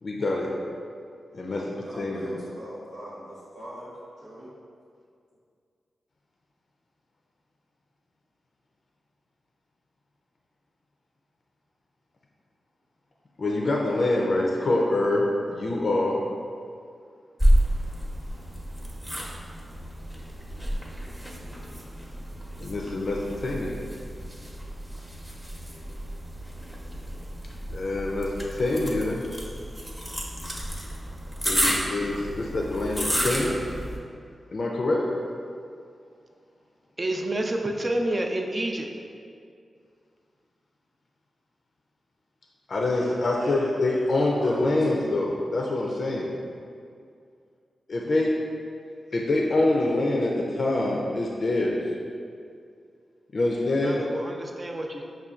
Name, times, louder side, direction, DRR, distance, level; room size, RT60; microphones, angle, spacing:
voice 1, 0.0-0.5 1.3-2.3 13.4-16.2 22.6-23.8 27.7-29.2 31.4-33.6 34.5-35.1 42.7-46.3 47.9-48.3 49.1-51.8 53.3-54.0, left 2 dB, 60° left, -2 dB, 0.4 m, -25 dB
voice 2, 1.8-3.9 4.2-4.5 42.9-45.0, equal, 90° right, -13 dB, 0.9 m, -41 dB
sound 1, 17.4-34.0, equal, 5° right, 0.8 m, -30 dB
voice 3, 37.0-38.9 53.8-55.0, right 1 dB, 40° right, 2 dB, 0.4 m, -28 dB
5.5 x 2.2 x 2.4 m, 2.3 s
supercardioid pair, 40°, 0 cm